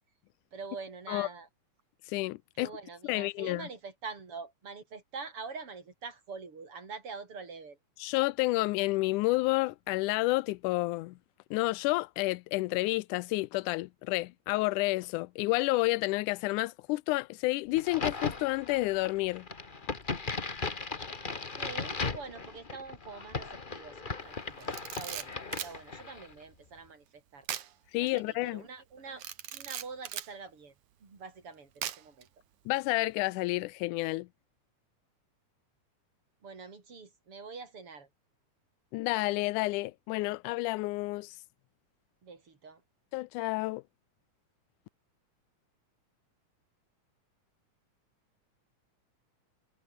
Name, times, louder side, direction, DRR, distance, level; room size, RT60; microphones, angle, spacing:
voice 1, 0.5-1.5 2.6-7.8 21.6-27.5 28.0-29.2 29.5-30.7 31.0-32.3 36.4-38.1 42.2-42.8, right 4 dB, 45° right, 5.2 m, -45 dB
voice 2, 2.1-2.7 3.0-3.7 8.0-11.2 11.5-19.5 27.9-28.6 32.7-34.3 38.9-41.3 43.1-43.8, left 21 dB, 80° left, 2.1 m, -30 dB
Crack, 17.8-26.3, left 4 dB, 35° left, 0.7 m, -37 dB
Camera, 24.6-25.8 27.5-27.7 28.1-28.2 29.2-30.3 31.8-32.2, right 11 dB, 70° right, 2.8 m, -38 dB
omnidirectional pair, 3.7 m